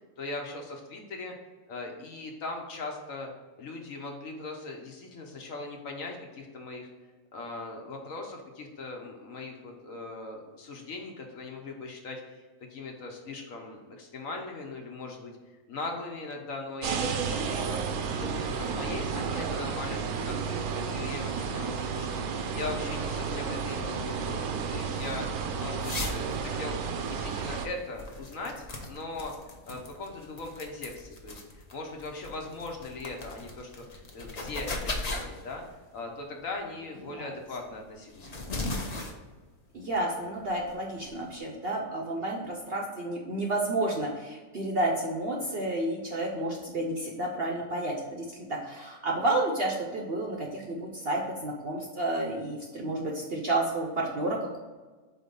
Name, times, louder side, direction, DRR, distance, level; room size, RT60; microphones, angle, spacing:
voice 1, 0.2-1.3 1.7-3.3 3.6-6.9 7.3-15.3 15.7-24.4 24.7-26.8 27.1-29.3 29.7-31.4 31.7-35.6 35.9-38.6, left 3 dB, 60° left, 1 dB, 1.2 m, -39 dB
sound 1, 16.8-27.7, right 6 dB, 70° right, 1.1 m, -32 dB
sound 2, 23.1-41.4, left 2 dB, 35° left, 0.6 m, -40 dB
voice 2, 39.7-54.6, right 2 dB, 50° right, 0 dB, 0.8 m, -31 dB
4.8 x 3.9 x 5.3 m, 1.3 s
omnidirectional pair, 1.7 m